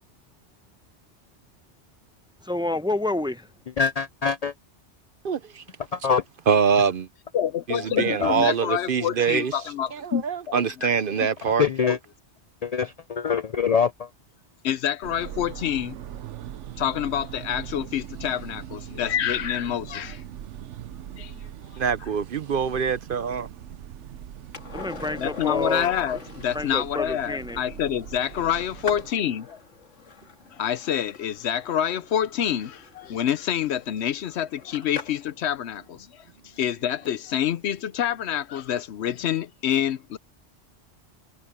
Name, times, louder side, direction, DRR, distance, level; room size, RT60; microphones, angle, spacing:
voice 1, 2.4-3.5 24.7-25.9 26.5-27.6, left 2 dB, 5° right, 0.6 m, -28 dB
voice 2, 3.8-4.5 5.9-6.2 8.2-8.3 11.6-12.0 12.6-14.1, left 6 dB, 55° left, 0.4 m, -24 dB
voice 3, 5.2-5.6 6.5-7.1 7.7-9.5 9.9-11.7 21.8-23.5, right 6 dB, 55° right, 0.8 m, -24 dB
voice 4, 7.3-10.9 11.8-12.0 14.6-16.0 16.8-20.2 21.2-21.4 25.2-29.6 30.6-36.2 36.6-40.2, left 10 dB, 70° left, 0.9 m, -27 dB
sound 1, 15.0-29.1, right 10 dB, 80° right, 1.0 m, -41 dB
Skateboard, 24.5-35.4 38.0-38.1, left 4 dB, 90° left, 2.1 m, -43 dB
omnidirectional pair, 1.2 m